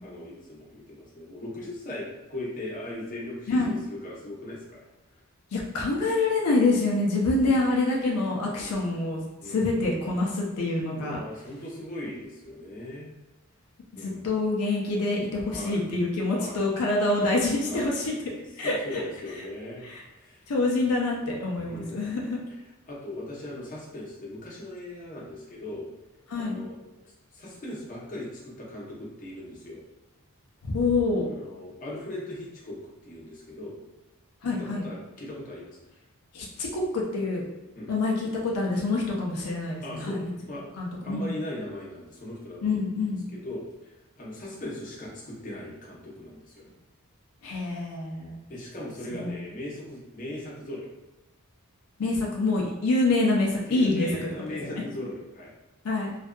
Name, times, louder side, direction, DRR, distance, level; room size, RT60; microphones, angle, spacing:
voice 1, 0.0-4.8 7.4-7.6 8.6-8.8 9.4-9.7 11.0-13.1 14.0-14.4 15.5-15.9 16.3-16.6 17.7-18.0 18.6-19.8 20.1-20.4 20.7-21.3 21.6-22.2 22.8-25.9 26.4-26.8 27.0-29.8 31.3-32.8 33.0-33.8 34.5-35.8 37.7-37.9 39.8-43.0 43.3-46.6 48.5-50.9 53.7-55.5, left 1 dB, 40° left, -5 dB, 0.7 m, -39 dB
voice 2, 5.5-11.2 14.0-18.2 18.6-19.0 19.8-20.0 20.5-22.4 26.3-26.7 30.6-31.3 34.4-34.9 36.3-37.5 37.9-40.3 40.8-41.4 42.6-43.3 47.4-48.4 49.2-49.3 52.0-54.1 54.5-54.8 55.8-56.1, left 2 dB, 80° left, -2 dB, 0.5 m, -26 dB
2.6 x 2.4 x 2.2 m, 1.1 s
head